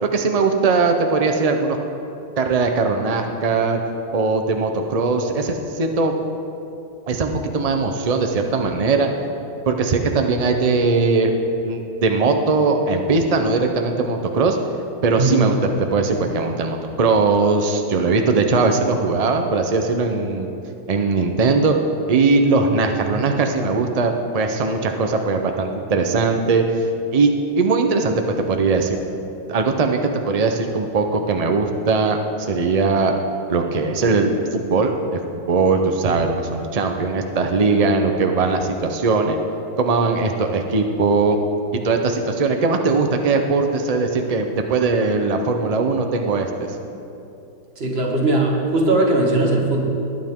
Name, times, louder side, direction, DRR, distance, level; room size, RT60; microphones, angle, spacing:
voice 1, 0.0-1.8 2.4-3.8 4.1-6.1 7.1-9.1 9.7-11.3 11.6-14.6 15.0-20.5 20.9-21.8 22.1-26.6 27.1-28.2 28.5-29.0 29.5-33.1 33.5-39.4 39.8-41.4 41.8-46.8, right 4 dB, 85° right, 4 dB, 0.3 m, -20 dB
voice 2, 15.2-15.5 47.8-49.9, right 2 dB, 35° right, -1 dB, 1.7 m, -19 dB
19.5 x 10.0 x 3.7 m, 2.8 s
omnidirectional pair, 1.9 m